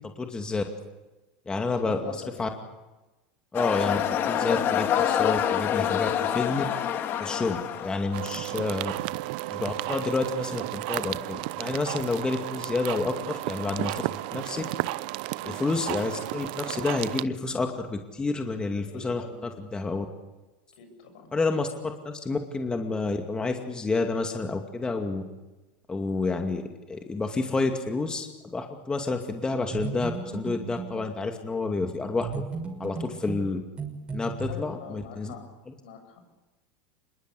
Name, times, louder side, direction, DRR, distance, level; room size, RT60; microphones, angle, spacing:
voice 1, 0.2-0.6 1.5-2.0 2.4-2.5 3.5-6.6 7.2-8.9 9.5-13.9 14.3-14.6 15.4-20.1 21.3-21.7 22.0-25.2 25.9-26.6 26.9-32.4 32.8-33.6 34.1-35.3, left 3 dB, 15° left, 4 dB, 2.4 m, -29 dB
voice 2, 1.8-2.5 7.1-7.7 15.4-15.6 18.8-19.5 20.8-21.3 34.5-35.5 35.8-36.2, left 6 dB, 75° left, 6 dB, 7.3 m, -43 dB
sound 1, 3.5-8.3, left 9 dB, 45° left, 2.5 m, -26 dB
sound 2, 8.1-17.2, right 19 dB, 65° right, 0.7 m, -33 dB
sound 3, 29.5-31.0 32.2-34.5, right 4 dB, 20° right, 6.2 m, -35 dB
26.0 x 22.0 x 8.3 m, 1.1 s
hypercardioid pair, 105°, 5 cm